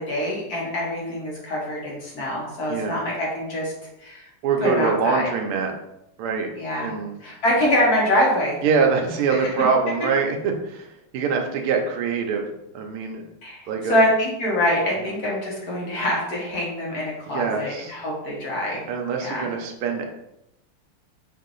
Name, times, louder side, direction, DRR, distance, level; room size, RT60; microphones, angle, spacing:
voice 1, 0.0-3.7 4.0-4.3 4.6-5.3 6.5-6.9 7.2-8.6 9.3-9.4 13.4-18.8 19.2-19.5, left 1 dB, 50° left, -4 dB, 1.5 m, -24 dB
voice 2, 4.4-5.7 6.2-6.5 6.8-7.1 8.6-12.4 12.7-13.2 13.7-14.0 17.3-18.0 18.9-20.0, right 5 dB, 85° right, 2 dB, 1.6 m, -24 dB
4.9 x 2.7 x 3.9 m, 0.84 s
omnidirectional pair, 2.4 m